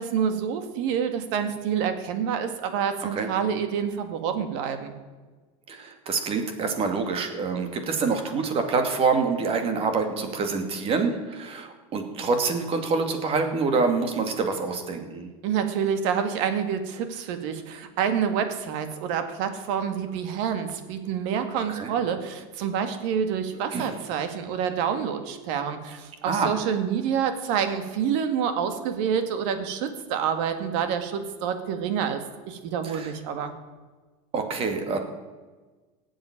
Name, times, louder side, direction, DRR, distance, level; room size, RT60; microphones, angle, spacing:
voice 1, 0.0-4.9 15.4-33.5, right 7 dB, 65° right, 8 dB, 2.1 m, -27 dB
voice 2, 5.7-15.3 21.8-21.9 23.7-23.9 26.3-26.6 32.8-33.1 34.3-35.0, right 4 dB, 35° right, 6 dB, 2.5 m, -26 dB
18.0 x 7.8 x 8.9 m, 1.3 s
supercardioid pair, 135°, 17 cm